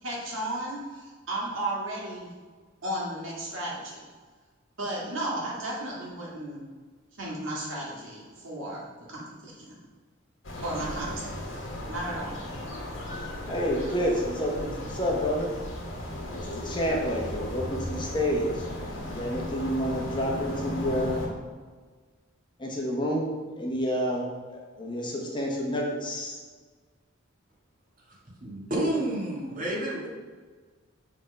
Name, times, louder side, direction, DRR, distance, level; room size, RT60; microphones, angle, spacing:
voice 1, 0.0-2.3 2.8-4.0 4.8-6.6 7.2-8.8 9.1-9.8 10.6-11.4 11.9-12.4, right 1 dB, 75° right, -5 dB, 2.1 m, -34 dB
sound 1, 10.4-21.3, left 1 dB, 80° left, 1.5 m, -36 dB
voice 2, 13.5-15.5 16.3-21.2 22.6-23.3 23.6-26.4, equal, 25° left, -1 dB, 1.0 m, -29 dB
voice 3, 28.4-30.1, right 1 dB, 45° right, -4 dB, 1.7 m, -29 dB
6.5 x 3.7 x 5.3 m, 1.5 s
head